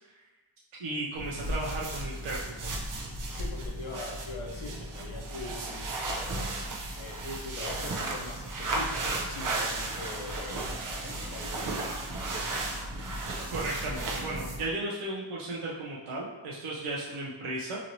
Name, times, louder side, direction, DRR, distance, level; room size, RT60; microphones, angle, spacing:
voice 1, 0.8-2.7 13.5-17.8, right 2 dB, 85° right, -5 dB, 0.7 m, -35 dB
sound 1, 1.1-14.7, right 2 dB, 45° right, 0.5 m, -34 dB
voice 2, 3.3-6.0 7.0-11.8, left 3 dB, 70° left, -1 dB, 0.7 m, -42 dB
2.9 x 2.9 x 2.6 m, 1.2 s
wide cardioid pair, 135°, 49 cm